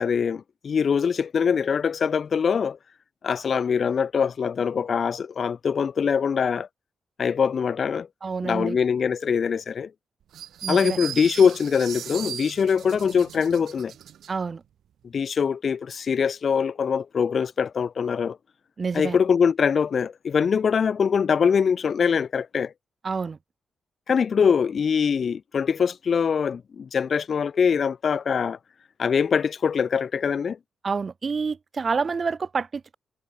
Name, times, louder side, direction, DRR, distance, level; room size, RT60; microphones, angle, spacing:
voice 1, 0.0-2.8 3.2-6.7 7.2-8.1 8.4-9.9 10.7-13.9 15.0-18.4 18.9-22.7 24.1-28.6 29.0-30.6, left 6 dB, 50° left, 1.3 m, -23 dB
voice 2, 8.2-8.8 10.6-11.0 14.3-14.6 18.8-19.2 23.0-23.4 30.8-33.0, right 5 dB, 40° right, 0.8 m, -28 dB
sound 1, 10.3-14.3, right 10 dB, 80° right, 2.4 m, -37 dB
cardioid pair, 105°, 0 cm